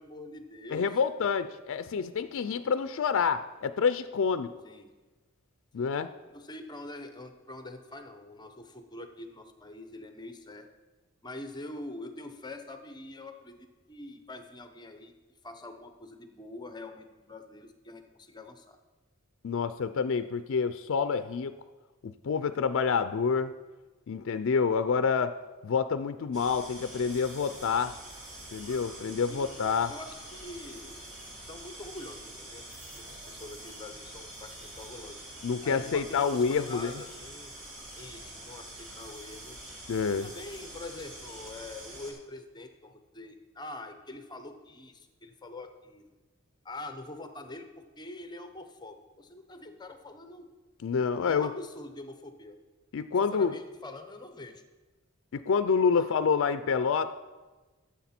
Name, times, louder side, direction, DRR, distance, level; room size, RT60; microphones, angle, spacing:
voice 1, 0.0-0.9 4.6-4.9 5.7-5.9 6.3-10.7 11.2-15.1 15.4-18.8 29.3-31.0 31.4-32.6 32.9-35.2 35.6-37.5 37.9-39.6 40.1-46.1 46.6-50.5 51.1-52.6 53.3-54.6 55.9-56.2, left 2 dB, 20° left, 7 dB, 0.7 m, -45 dB
voice 2, 0.7-4.5 5.7-6.1 19.4-21.5 22.0-23.5 24.1-25.4 25.6-27.9 28.5-29.9 35.4-36.9 39.9-40.3 50.8-51.5 52.9-53.6 55.3-57.1, left 5 dB, 65° left, 10 dB, 0.4 m, -28 dB
sound 1, 26.3-42.1, right 1 dB, 60° right, 3.0 m, -46 dB
13.5 x 7.4 x 4.3 m, 1.2 s
head